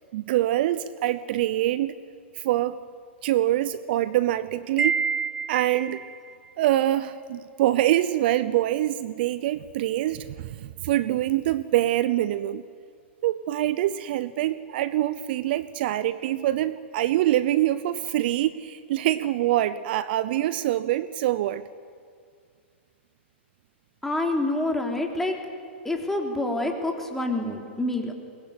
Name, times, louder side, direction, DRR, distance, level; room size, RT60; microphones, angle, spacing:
voice 1, 0.1-2.0 2.3-2.8 3.2-5.0 5.5-6.0 6.6-12.6 13.2-21.6, right 13 dB, 55° right, 16 dB, 0.7 m, -25 dB
Wind chime, 4.8-6.2, right 5 dB, 15° right, 0.6 m, -27 dB
voice 2, 24.0-25.4 25.8-28.1, left 2 dB, 5° left, 2 dB, 3.5 m, -27 dB
22.5 x 20.5 x 8.9 m, 2.2 s
hypercardioid pair, 110°, 7 cm